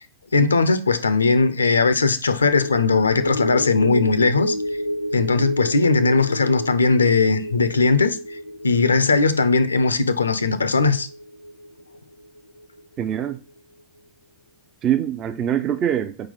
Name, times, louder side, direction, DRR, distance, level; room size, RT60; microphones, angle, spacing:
voice 1, 0.3-4.6 5.1-8.4 8.6-11.1, left 4 dB, 75° left, 0.5 m, -19 dB
sound 1, 2.4-13.0 13.3-13.5, equal, 85° right, 0.8 m, -31 dB
voice 2, 13.0-13.4 14.8-16.3, right 10 dB, 30° right, 0.4 m, -24 dB
4.5 x 3.9 x 5.4 m
figure-of-eight pair, 90°, 0 cm